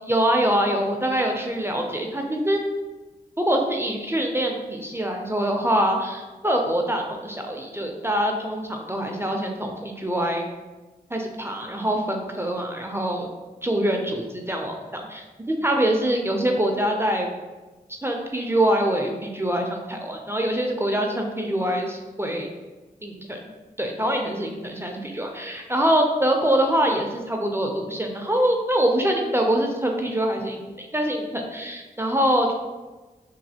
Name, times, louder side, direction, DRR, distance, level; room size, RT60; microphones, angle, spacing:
voice 1, 0.1-2.6 3.4-10.4 11.1-13.3 13.6-17.3 17.9-22.5 23.0-23.4 23.8-32.5, right 1 dB, 15° right, 2 dB, 0.4 m, -24 dB
3.1 x 2.3 x 2.7 m, 1.2 s
cardioid pair, 45°, 16 cm